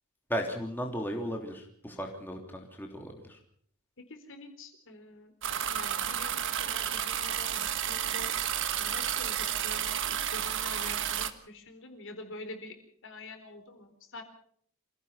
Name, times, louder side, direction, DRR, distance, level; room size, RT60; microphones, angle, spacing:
voice 1, 0.3-3.4, equal, 10° left, 1 dB, 3.2 m, -35 dB
voice 2, 4.1-5.3 5.7-8.3 8.8-12.7 13.0-14.2, left 2 dB, 60° left, 6 dB, 4.2 m, -46 dB
sound 1, 5.4-11.3, right 10 dB, 60° right, 1.5 m, -31 dB
27.0 x 16.5 x 5.8 m, 0.62 s
head